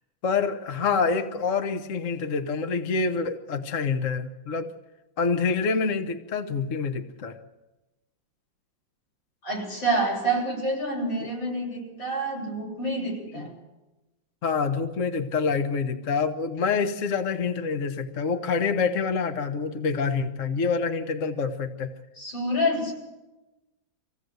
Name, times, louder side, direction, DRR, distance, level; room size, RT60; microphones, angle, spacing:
voice 1, 0.2-4.7 5.2-7.4 11.2-11.3 13.3-13.5 14.4-21.9, left 5 dB, 45° left, 7 dB, 1.3 m, -26 dB
voice 2, 9.4-13.5 22.2-22.9, right 1 dB, 80° left, -2 dB, 7.8 m, -27 dB
25.5 x 16.5 x 8.0 m, 1.1 s
omnidirectional pair, 2.1 m